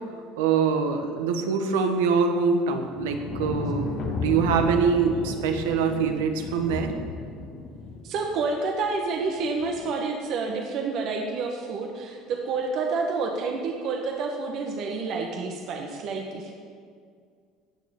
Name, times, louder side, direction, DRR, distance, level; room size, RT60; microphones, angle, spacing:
voice 1, 0.4-6.9, right 5 dB, 80° right, 5 dB, 1.3 m, -24 dB
sound 1, 2.9-8.4 9.6-9.9, left 3 dB, 55° left, 2.0 m, -33 dB
voice 2, 8.0-16.5, right 4 dB, 60° right, 2 dB, 1.5 m, -29 dB
17.0 x 6.5 x 7.1 m, 2.1 s
hypercardioid pair, 70°, 0 cm